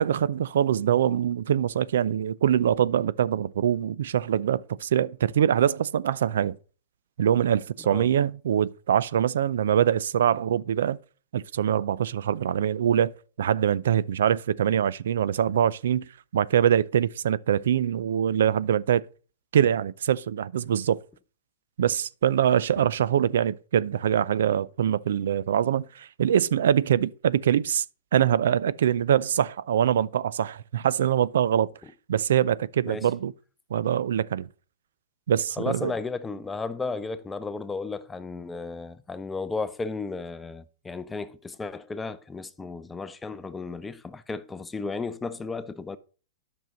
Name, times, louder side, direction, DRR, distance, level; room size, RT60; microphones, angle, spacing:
voice 1, 0.0-6.6 7.2-11.0 11.3-13.1 13.4-16.0 16.3-19.0 19.5-21.0 21.8-27.8 28.1-31.7 32.1-33.3 33.7-34.5 35.3-35.9, right 9 dB, 75° right, 0.4 m, -23 dB
voice 2, 35.6-46.0, left 4 dB, 10° left, 0.6 m, -34 dB
9.3 x 6.1 x 5.2 m
hypercardioid pair, 130°, 0 cm